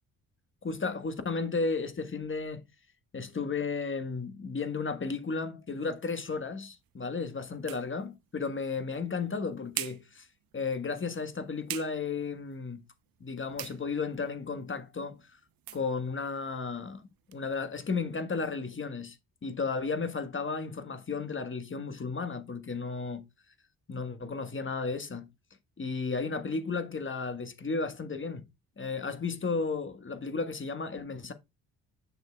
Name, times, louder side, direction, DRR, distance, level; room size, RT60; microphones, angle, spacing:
voice 1, 0.6-2.6 3.1-10.3 10.5-12.8 13.2-15.4 15.7-19.2 19.4-23.3 23.9-25.3 25.8-28.4 28.8-31.3, left 4 dB, 30° left, 1.4 m, -34 dB
sound 1, 5.9-17.4, right 13 dB, 60° right, 0.8 m, -47 dB
7.5 x 6.4 x 2.3 m
supercardioid pair, 60°, 39 cm